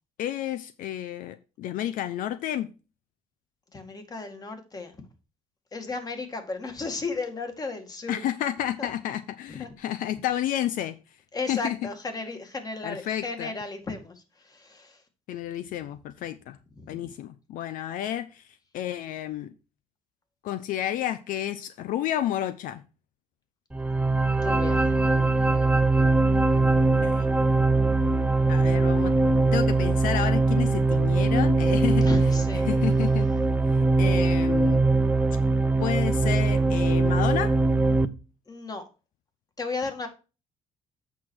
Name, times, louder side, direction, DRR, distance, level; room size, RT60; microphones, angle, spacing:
voice 1, 0.2-2.7 8.1-11.0 11.5-11.8 12.8-13.5 15.3-16.6 16.9-18.5 18.7-19.5 20.4-22.8 27.0-27.3 28.5-32.1 32.6-33.3 33.7-34.9 35.8-37.5, left 11 dB, 80° left, 12 dB, 0.7 m, -31 dB
voice 2, 3.7-5.0 5.7-8.2 8.8-8.9 9.5-9.7 11.3-15.0 16.7-17.1 24.4-24.8 32.0-32.6 38.5-38.8 39.6-40.1, left 3 dB, 25° left, 6 dB, 2.0 m, -34 dB
sound 1, 23.7-38.1, right 3 dB, 10° right, 0.7 m, -22 dB
8.4 x 5.9 x 4.6 m, 0.31 s
cardioid pair, 110°, 14 cm